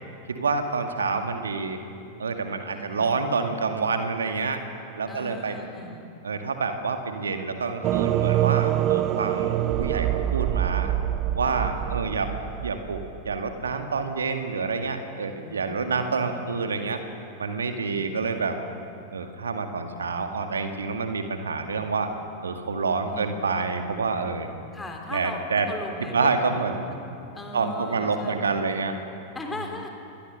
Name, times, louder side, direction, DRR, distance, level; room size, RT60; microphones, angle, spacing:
voice 1, 0.3-1.8 2.2-4.6 5.0-5.6 6.2-10.9 11.3-12.3 12.6-17.0 17.4-18.6 19.1-22.1 22.4-24.5 25.1-25.7 26.1-26.9 27.5-29.0, right 4 dB, 70° right, 6 dB, 2.0 m, -28 dB
voice 2, 2.7-3.2 5.1-6.1 11.4-12.0 15.3-16.3 17.9-18.1 23.0-23.5 24.7-26.4 26.9-27.0 27.3-28.4 29.3-29.9, left 2 dB, 10° left, 2 dB, 3.5 m, -39 dB
sound 1, 7.8-13.5, right 12 dB, 35° right, 0.7 m, -25 dB
26.5 x 21.5 x 6.7 m, 2.6 s
figure-of-eight pair, 90°, 0 cm